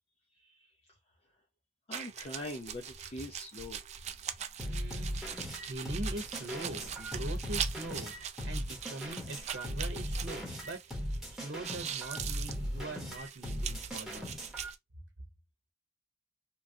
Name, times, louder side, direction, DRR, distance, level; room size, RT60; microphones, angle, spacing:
voice 1, 1.9-3.8, left 1 dB, 35° left, 0.6 m, -43 dB
sound 1, 1.9-11.2 11.4-14.8, right 9 dB, 40° right, 0.3 m, -42 dB
sound 2, 4.6-14.7, equal, ahead, 1.2 m, -38 dB
voice 2, 4.6-5.2 5.6-8.1 8.4-10.8 11.3-14.3, right 2 dB, 75° right, 0.8 m, -42 dB
3.0 x 2.4 x 2.6 m
head